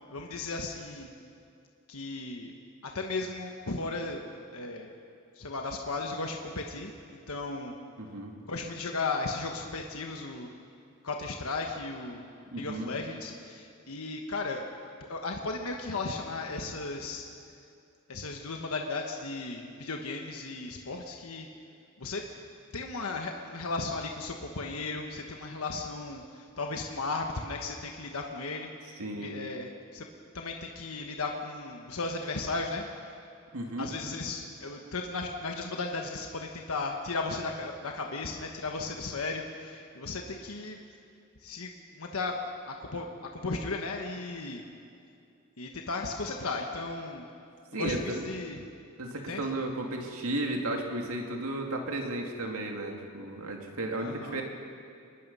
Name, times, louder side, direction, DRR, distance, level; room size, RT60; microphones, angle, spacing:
voice 1, 0.1-1.1 1.9-2.5 2.8-4.2 4.5-4.9 5.3-7.8 8.4-10.5 11.0-12.2 12.5-14.7 15.0-17.2 18.1-21.5 22.0-22.2 22.7-30.1 30.3-32.8 33.8-40.8 41.4-42.4 42.7-44.6 45.6-47.3 47.7-48.6 49.3-49.5 53.9-54.4, left 3 dB, 75° left, 2 dB, 1.3 m, -35 dB
voice 2, 8.0-8.3 12.5-12.9 29.0-29.3 33.5-33.9 47.7-48.2 49.0-54.4, right 1 dB, 75° right, 1 dB, 2.6 m, -34 dB
24.0 x 20.5 x 5.6 m, 2.4 s
head